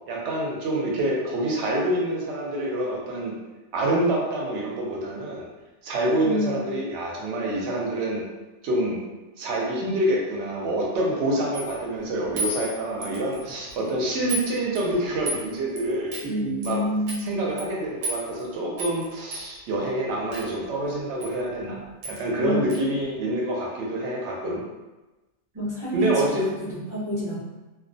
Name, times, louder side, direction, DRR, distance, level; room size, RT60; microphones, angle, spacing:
voice 1, 0.1-3.3 3.7-5.5 5.8-8.2 8.6-9.0 9.4-16.1 16.6-16.8 17.2-24.6 25.9-26.5, right 1 dB, 65° right, -2 dB, 0.9 m, -26 dB
voice 2, 6.2-6.7 16.2-17.4 22.4-22.9 25.5-27.4, right 1 dB, 20° right, -10 dB, 0.6 m, -28 dB
sound 1, 11.5-11.8 12.4-13.4 13.7-13.9 14.3-14.5 14.8-15.4 15.8-15.9 16.1-16.3 16.6-16.7 17.1-17.2 17.6-17.7 18.0-18.4 18.8-19.1 19.3-19.4 20.3-20.5 21.2-21.3 21.6-21.7 22.0-22.2 22.7-22.8, equal, 85° right, 1.0 m, -32 dB
2.3 x 2.1 x 2.6 m, 1.1 s
omnidirectional pair, 1.4 m